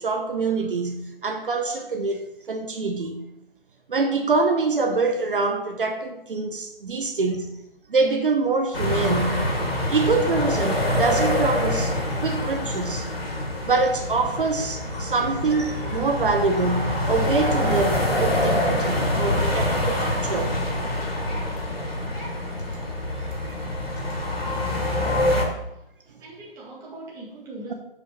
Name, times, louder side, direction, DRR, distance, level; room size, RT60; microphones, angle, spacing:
voice 1, 0.0-3.2 3.9-7.5 7.9-9.5 9.9-12.0 12.2-13.1 13.6-20.6, right 4 dB, 60° right, 5 dB, 1.0 m, -25 dB
sound 1, 8.7-25.4, left 1 dB, 75° left, 2.8 m, -25 dB
voice 2, 26.1-27.7, right 2 dB, 10° right, -5 dB, 1.9 m, -42 dB
12.0 x 5.4 x 3.1 m, 0.85 s
figure-of-eight pair, 140°, 30 cm